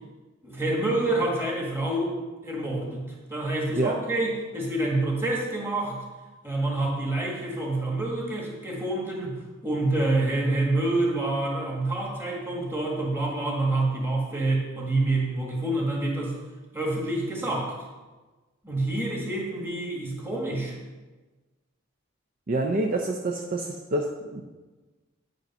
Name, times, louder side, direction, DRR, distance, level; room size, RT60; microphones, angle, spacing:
voice 1, 0.4-6.0 6.4-16.3 16.7-17.8 18.6-20.8, right 2 dB, 10° right, -2 dB, 1.6 m, -27 dB
voice 2, 22.5-24.4, right 2 dB, 40° right, 2 dB, 0.5 m, -27 dB
9.1 x 5.3 x 5.4 m, 1.2 s
head